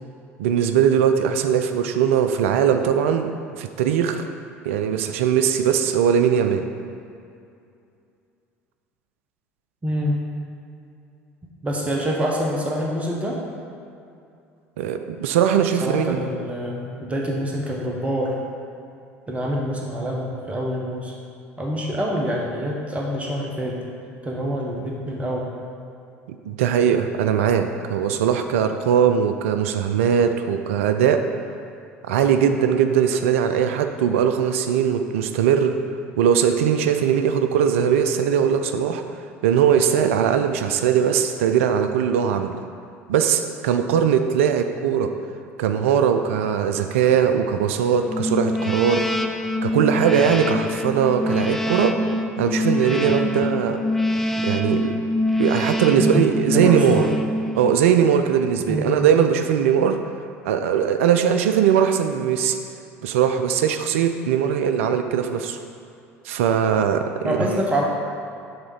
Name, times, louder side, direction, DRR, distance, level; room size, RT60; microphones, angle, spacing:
voice 1, 0.4-4.3 4.6-6.6 14.8-16.2 26.4-31.2 32.0-35.7 36.2-39.0 39.4-42.6 43.1-45.1 45.6-49.0 49.6-52.0 52.4-53.8 54.4-55.0 55.4-57.0 57.6-60.0 60.4-62.6 63.0-65.6 66.2-67.6, right 8 dB, 65° right, 8 dB, 0.4 m, -20 dB
voice 2, 9.8-10.2 11.6-13.4 15.8-18.4 19.3-21.1 21.6-23.8 24.2-25.5 55.9-57.2 58.7-59.1 67.2-67.8, equal, 15° right, -2 dB, 1.2 m, -26 dB
sound 1, 48.1-58.0, left 1 dB, 5° left, 0.4 m, -25 dB
6.9 x 3.6 x 5.3 m, 2.5 s
figure-of-eight pair, 65°, 7 cm